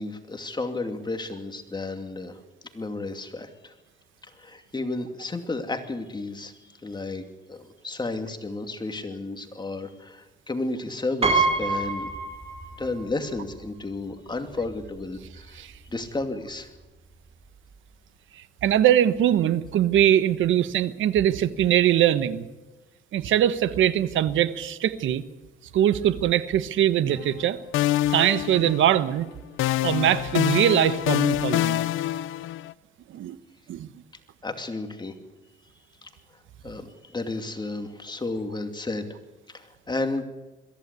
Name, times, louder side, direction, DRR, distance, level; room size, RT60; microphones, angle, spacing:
voice 1, 0.0-2.4 2.7-3.7 4.4-6.5 6.8-12.1 12.8-15.6 15.9-16.7 34.4-35.1 36.0-36.1 36.6-39.1 39.5-40.2, left 2 dB, 20° left, 6 dB, 2.6 m, -32 dB
Piano, 11.2-13.0 13.4-13.5 14.6-14.7 15.0-15.3, right 3 dB, 30° right, 4.4 m, -25 dB
voice 2, 18.6-22.5 23.1-25.2 25.7-27.6 28.1-29.3 29.8-31.8 33.1-33.4 33.7-33.9, right 11 dB, 75° right, 13 dB, 1.2 m, -22 dB
sound 1, 27.1-27.5 27.7-29.2 29.6-32.7, left 14 dB, 90° left, 0.6 m, -26 dB
22.0 x 15.5 x 8.3 m, 1.1 s
cardioid pair, 90°, 20 cm